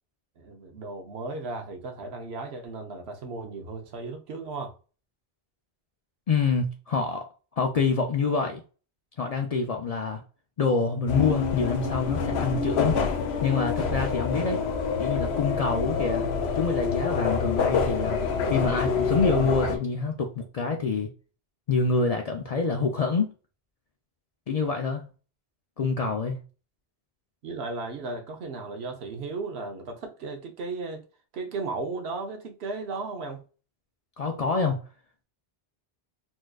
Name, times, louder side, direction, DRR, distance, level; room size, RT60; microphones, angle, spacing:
voice 1, 0.4-4.7 27.4-31.0 31.3-33.4, right 3 dB, 80° right, 1.0 m, -35 dB
voice 2, 6.3-7.3 7.6-8.6 9.2-10.2 10.6-13.1 13.4-14.6 15.0-16.3 16.5-18.2 18.5-21.1 21.7-23.3 24.5-25.1 25.8-26.4 34.2-34.8, left 4 dB, 55° left, 0.4 m, -26 dB
sound 1, 11.1-19.8, left 5 dB, 85° left, 0.9 m, -27 dB
4.2 x 2.4 x 2.3 m
omnidirectional pair, 1.1 m